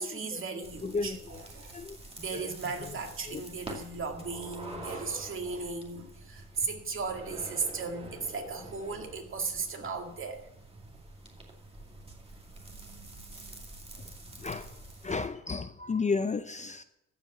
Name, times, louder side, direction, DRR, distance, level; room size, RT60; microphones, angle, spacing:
voice 1, 0.0-1.8 2.2-10.5, right 4 dB, 45° right, 2.1 m, -36 dB
sound 1, 0.6-15.3, right 2 dB, 20° right, 2.3 m, -47 dB
voice 2, 0.8-1.2 1.7-2.0 3.3-3.4 14.4-14.7 15.0-16.8, left 4 dB, 25° left, 0.5 m, -32 dB
14.0 x 5.1 x 7.7 m
cardioid pair, 90°, 30 cm